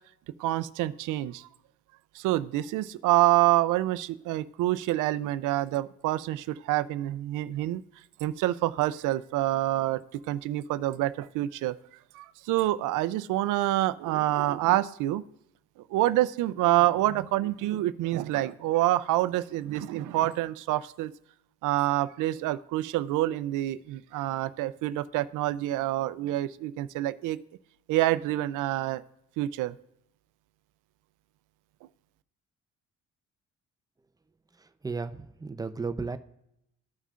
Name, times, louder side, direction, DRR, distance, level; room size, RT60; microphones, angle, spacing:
voice 1, 0.4-1.5 2.1-7.8 8.2-10.0 10.3-11.7 12.1-15.2 15.9-21.1 21.6-27.4 27.9-29.0 29.4-29.8, right 15 dB, 85° right, 16 dB, 0.5 m, -27 dB
voice 2, 34.8-36.2, right 4 dB, 10° right, 9 dB, 0.5 m, -34 dB
14.0 x 5.5 x 2.4 m, 0.78 s
cardioid pair, 90°, 30 cm